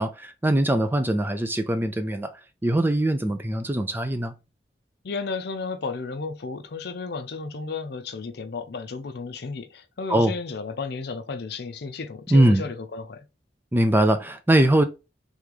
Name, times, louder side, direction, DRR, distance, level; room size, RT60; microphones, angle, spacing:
voice 1, 0.0-2.3 2.6-4.3 10.1-10.3 12.3-12.6 13.7-14.8, right 1 dB, 10° right, 0.4 m, -21 dB
voice 2, 5.0-13.2, left 4 dB, 65° left, 0.6 m, -33 dB
3.4 x 3.2 x 3.8 m
head